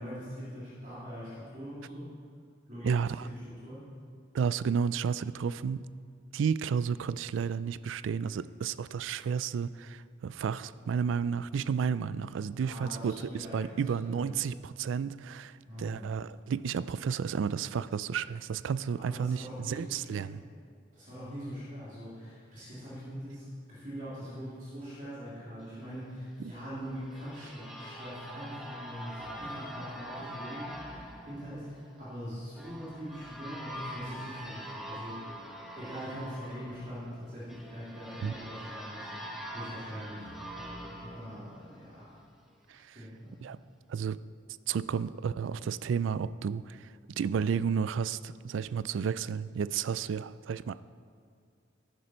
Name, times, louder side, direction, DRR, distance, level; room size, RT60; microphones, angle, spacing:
voice 1, 0.0-2.1 2.7-3.9 12.6-13.7 14.0-14.3 15.7-16.2 19.0-20.4 20.9-35.3 35.7-42.1 42.9-43.4, equal, 40° right, -10 dB, 3.2 m, -42 dB
voice 2, 2.8-3.3 4.3-5.8 6.3-20.4 38.2-38.3 42.7-43.0 43.4-43.6 43.9-44.2 44.7-50.8, right 6 dB, 75° right, 17 dB, 0.3 m, -32 dB
sound 1, 26.5-42.2, equal, ahead, 1.0 m, -44 dB
13.0 x 9.9 x 4.4 m, 2.1 s
head